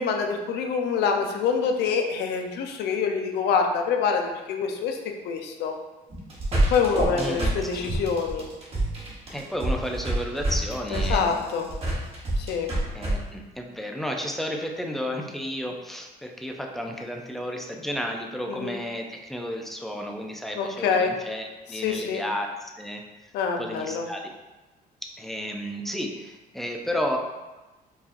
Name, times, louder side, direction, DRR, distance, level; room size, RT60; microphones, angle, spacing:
voice 1, 0.0-5.0 5.2-5.7 6.7-8.5 10.9-11.7 12.4-12.7 18.5-18.8 20.6-21.1 21.8-22.2 23.3-24.0, left 5 dB, 80° left, 4 dB, 0.5 m, -26 dB
sound 1, 6.1-13.1, right 1 dB, 35° right, 1.2 m, -27 dB
voice 2, 7.2-7.9 9.3-11.4 12.9-23.0 23.6-24.3 25.0-27.2, equal, ahead, 2 dB, 0.4 m, -32 dB
4.7 x 2.7 x 2.5 m, 1.1 s
cardioid pair, 110°, 17 cm